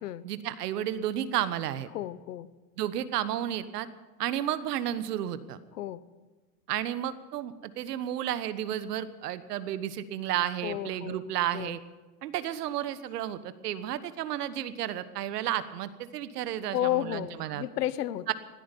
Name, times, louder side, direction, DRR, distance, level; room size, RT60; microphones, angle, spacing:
voice 1, 0.2-1.9 2.8-3.9 4.2-5.6 6.7-11.8 12.2-17.6 18.3-18.4, right 11 dB, 80° right, 13 dB, 1.3 m, -32 dB
voice 2, 1.9-2.5 5.7-6.1 10.6-11.2 11.5-11.8 16.7-18.3, left 13 dB, 90° left, 17 dB, 1.0 m, -32 dB
20.0 x 13.5 x 5.4 m, 1.2 s
supercardioid pair, 140°, 46 cm